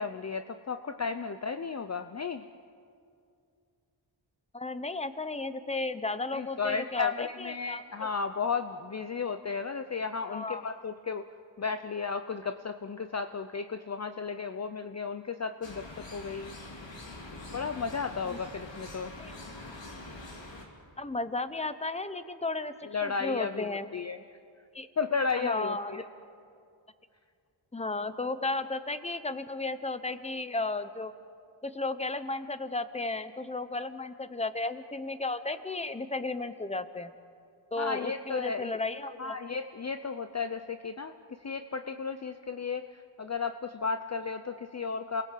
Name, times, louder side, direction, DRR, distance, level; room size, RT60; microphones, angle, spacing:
voice 1, 0.0-2.4 6.3-11.2 11.6-15.9 16.1-16.5 17.5-19.1 22.9-24.2 25.0-26.0 37.8-38.8 39.2-41.1 41.4-45.2, left 5 dB, 35° left, 9 dB, 0.7 m, -34 dB
voice 2, 4.5-8.1 10.3-10.6 18.3-18.4 19.2-19.3 21.0-23.9 24.7-24.9 25.4-26.0 27.7-31.1 31.6-37.1 37.7-39.4, left 2 dB, 15° left, 12 dB, 0.9 m, -34 dB
sound 1, 15.6-20.7, left 2 dB, 70° left, 3.5 m, -44 dB
28.5 x 20.0 x 7.7 m, 2.4 s
wide cardioid pair, 110°, 46 cm